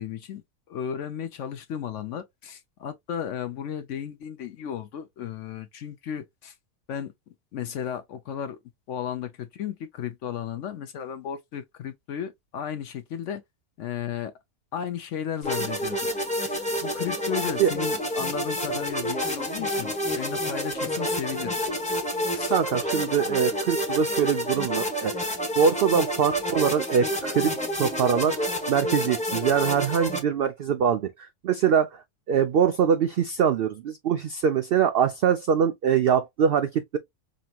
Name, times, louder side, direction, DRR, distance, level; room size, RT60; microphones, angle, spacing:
voice 1, 0.0-6.5 6.9-7.1 7.5-8.6 8.9-13.4 13.8-14.3 14.7-16.0 16.5-21.6 22.3-22.5, left 9 dB, 65° left, 0.8 m, -34 dB
sound 1, 15.4-30.2, equal, 5° left, 0.8 m, -29 dB
voice 2, 22.5-32.0 32.3-37.0, right 7 dB, 75° right, 0.5 m, -23 dB
5.2 x 2.8 x 2.3 m
omnidirectional pair, 1.5 m